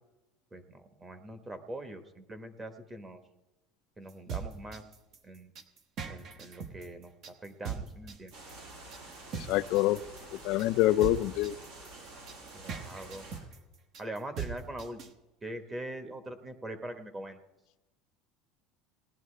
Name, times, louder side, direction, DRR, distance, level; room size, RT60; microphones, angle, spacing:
voice 1, 0.5-3.2 4.0-4.8 5.2-5.5 6.0-8.3 12.5-13.2 14.0-15.0 15.4-17.4, right 1 dB, 20° right, 8 dB, 1.1 m, -42 dB
sound 1, 4.1-15.1, right 6 dB, 45° right, 1.1 m, -40 dB
sound 2, 8.3-13.4, right 2 dB, 80° right, 5.5 m, -49 dB
voice 2, 9.3-10.0 10.3-11.5, left 16 dB, 60° left, 14 dB, 0.5 m, -26 dB
19.0 x 10.5 x 3.3 m, 1.0 s
supercardioid pair, 130°, 0 cm